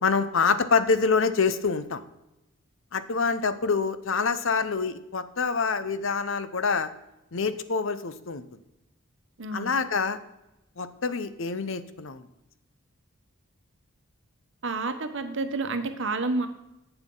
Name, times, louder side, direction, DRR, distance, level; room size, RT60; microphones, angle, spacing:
voice 1, 0.0-2.0 2.9-6.9 7.3-8.4 9.5-10.2 10.8-12.2, left 5 dB, 60° left, 12 dB, 0.7 m, -26 dB
voice 2, 9.4-9.8 14.6-16.5, right 3 dB, 60° right, 8 dB, 1.0 m, -29 dB
11.0 x 8.1 x 3.8 m, 0.92 s
head